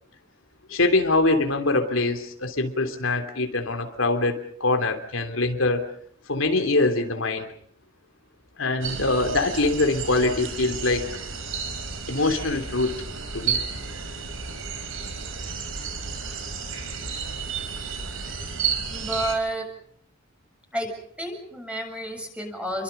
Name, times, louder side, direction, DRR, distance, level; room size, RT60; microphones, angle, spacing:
voice 1, 0.7-5.8 6.3-7.5 8.6-11.1 12.1-13.0 13.3-13.6, left 2 dB, 80° left, 5 dB, 3.2 m, -23 dB
sound 1, 8.8-19.4, right 6 dB, 80° right, 4.4 m, -32 dB
voice 2, 18.9-19.7 20.7-20.9 21.2-22.8, right 1 dB, 5° right, 3 dB, 7.2 m, -30 dB
30.0 x 24.0 x 5.6 m, 0.62 s
head